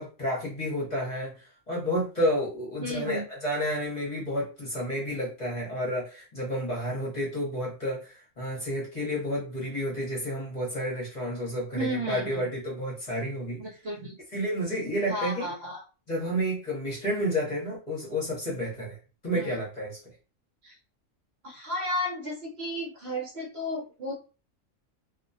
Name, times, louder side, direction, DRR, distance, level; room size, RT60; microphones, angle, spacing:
voice 1, 0.0-13.6 14.3-15.5 16.1-19.0 19.2-20.0, equal, 35° left, -5 dB, 0.9 m, -30 dB
voice 2, 2.8-3.3 11.7-12.5 13.6-14.2 15.1-15.8 19.3-19.6 20.6-20.7 21.4-24.2, equal, 60° right, -1 dB, 0.9 m, -33 dB
2.3 x 2.1 x 2.6 m, 0.33 s
omnidirectional pair, 1.4 m